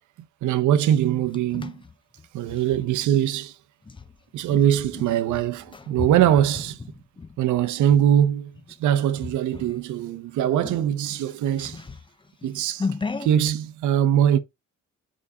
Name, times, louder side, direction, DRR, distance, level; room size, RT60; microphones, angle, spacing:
voice 1, 0.4-1.7 2.3-3.5 4.3-6.8 7.4-8.5 8.8-11.8 12.4-12.9 13.2-14.4, right 10 dB, 75° right, 0.7 m, -22 dB
sound 1, 0.9-2.9 3.8-8.1 8.5-8.8 9.2-9.8 10.2-10.3 10.6-13.5, left 4 dB, 15° left, 0.6 m, -36 dB
4.9 x 4.2 x 4.8 m
cardioid pair, 90°, 30 cm